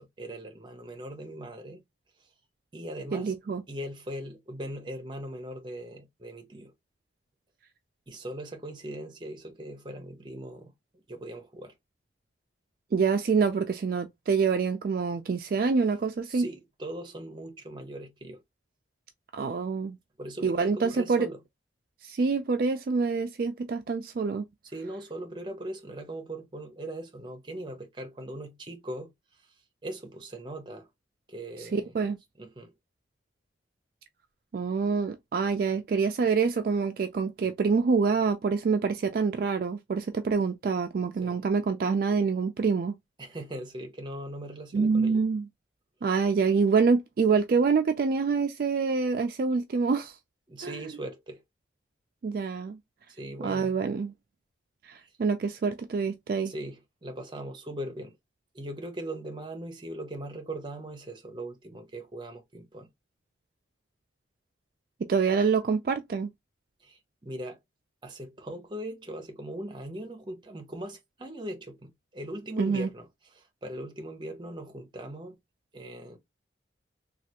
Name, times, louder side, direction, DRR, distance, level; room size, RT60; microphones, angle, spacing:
voice 1, 0.0-1.8 2.7-3.3 3.7-6.7 8.1-11.7 16.3-18.4 20.2-21.4 24.6-29.1 29.8-30.9 31.3-32.0 32.4-32.7 41.2-41.4 43.2-45.2 50.5-51.4 53.1-53.7 55.0-55.1 56.4-58.2 58.5-62.9 66.8-67.6 68.0-75.4 75.7-76.2, right 1 dB, 25° right, 0.7 m, -40 dB
voice 2, 3.1-3.6 12.9-16.4 19.3-20.0 20.4-21.3 22.0-24.4 31.6-32.2 34.5-42.9 44.7-45.5 46.0-50.2 50.6-50.7 52.2-52.8 53.4-54.1 54.8-56.5 65.1-66.3 72.6-72.9, right 5 dB, 50° right, 0.3 m, -26 dB
3.2 x 2.3 x 2.8 m
head